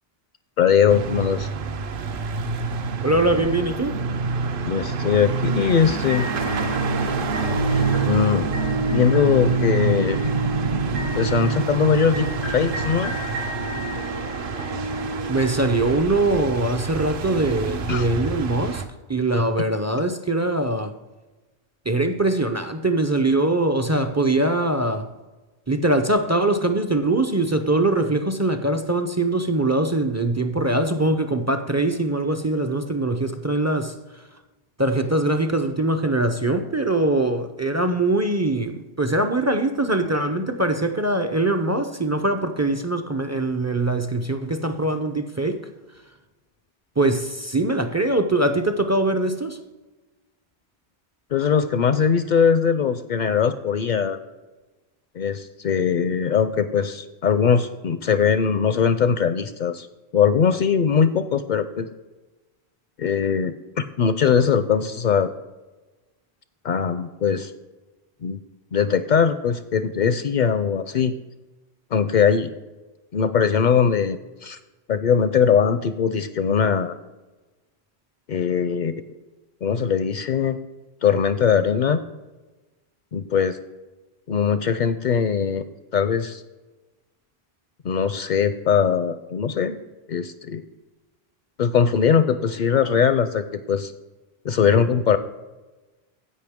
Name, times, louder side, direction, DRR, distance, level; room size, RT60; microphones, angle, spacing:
voice 1, 0.6-1.5 4.6-6.3 7.7-8.5 8.8-10.2 11.2-13.2 17.9-18.1 51.3-54.2 55.2-59.9 60.1-61.9 63.0-65.3 66.6-67.5 68.2-68.4 68.7-71.1 71.9-72.5 73.1-74.6 74.9-77.0 78.3-78.9 79.6-80.6 81.0-82.0 83.1-83.6 84.3-85.7 85.9-86.4 87.8-89.8 90.1-90.6 91.6-93.9 94.4-95.2, left 7 dB, 55° left, 12 dB, 0.5 m, -21 dB
sound 1, 0.9-18.8, right 4 dB, 60° right, 0.8 m, -27 dB
voice 2, 3.0-4.0 15.3-18.8 19.1-20.9 21.9-25.1 25.7-33.9 34.8-45.7 47.0-49.6, right 2 dB, 30° right, 8 dB, 0.3 m, -22 dB
sound 2, 6.1-16.1, equal, 80° right, 3.5 m, -31 dB
16.0 x 5.4 x 3.6 m, 1.2 s
omnidirectional pair, 1.1 m